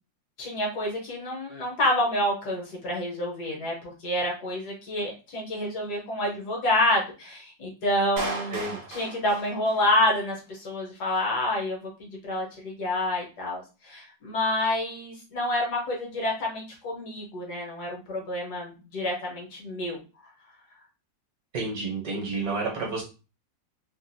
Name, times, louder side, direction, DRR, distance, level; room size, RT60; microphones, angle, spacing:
voice 1, 0.4-8.6 8.9-20.0, left 1 dB, 65° left, -1 dB, 1.5 m, -28 dB
Clapping, 8.2-10.2, right 3 dB, 75° right, 0.5 m, -36 dB
voice 2, 21.5-23.0, right 3 dB, 60° right, -1 dB, 1.2 m, -30 dB
3.3 x 2.4 x 2.6 m, 0.32 s
omnidirectional pair, 2.0 m